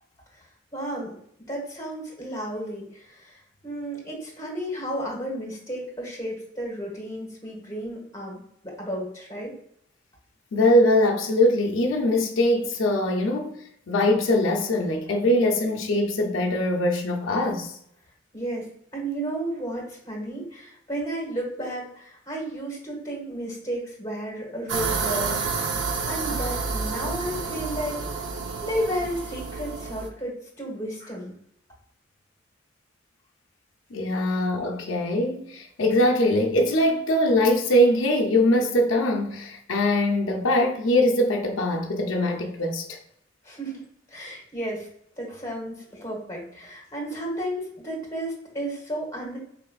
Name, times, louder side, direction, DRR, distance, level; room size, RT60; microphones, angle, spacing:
voice 1, 0.7-1.1 1.5-9.5 18.3-25.8 26.0-28.3 28.6-31.3 43.4-43.8 44.1-44.9 45.2-49.4, right 1 dB, 15° left, 1.3 m, -33 dB
voice 2, 10.5-17.7 33.9-43.0, left 1 dB, 85° left, 0.6 m, -22 dB
sound 1, 24.7-30.1, right 4 dB, 65° right, 0.5 m, -29 dB
4.3 x 3.2 x 2.3 m
head